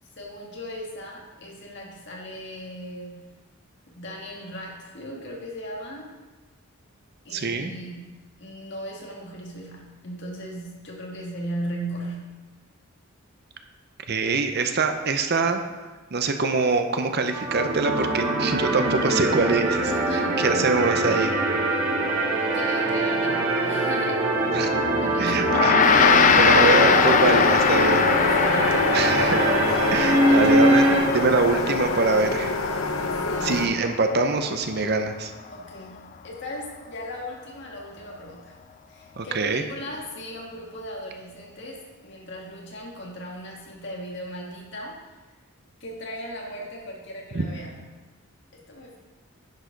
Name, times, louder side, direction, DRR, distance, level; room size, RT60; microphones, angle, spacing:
voice 1, 0.0-3.3 3.9-6.1 7.2-12.4 19.8-20.4 22.5-24.3 25.0-25.6 26.9-27.5 28.3-29.0 30.2-30.7 33.1-33.7 35.5-38.6 38.9-45.2 45.8-48.0 48.5-49.0, equal, 55° left, -2 dB, 2.0 m, -38 dB
voice 2, 7.3-7.7 14.1-15.6 16.1-19.8 20.4-21.3 24.5-24.7 25.2-28.1 28.9-29.5 29.9-32.6 33.4-35.3 39.2-39.6 47.3-47.5, right 3 dB, 50° right, 6 dB, 0.7 m, -24 dB
sound 1, 17.3-31.0, right 1 dB, 80° right, 1.6 m, -23 dB
Gong, 25.4-35.0, left 6 dB, 35° left, 0.4 m, -23 dB
sound 2, 25.8-33.7, left 3 dB, 80° left, 0.8 m, -26 dB
10.5 x 4.9 x 5.2 m, 1.3 s
head